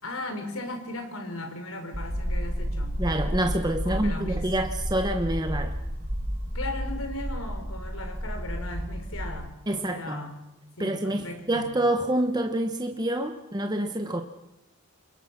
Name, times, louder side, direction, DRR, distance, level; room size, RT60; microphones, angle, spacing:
voice 1, 0.0-3.0 3.8-4.5 6.5-10.4 10.8-11.8, left 2 dB, 85° left, 6 dB, 4.3 m, -37 dB
sound 1, 1.9-9.3, equal, 40° right, 6.4 m, -31 dB
voice 2, 3.0-5.8 9.7-10.2 10.8-14.2, right 1 dB, 20° right, 5 dB, 1.2 m, -27 dB
27.5 x 23.0 x 6.0 m, 0.93 s
head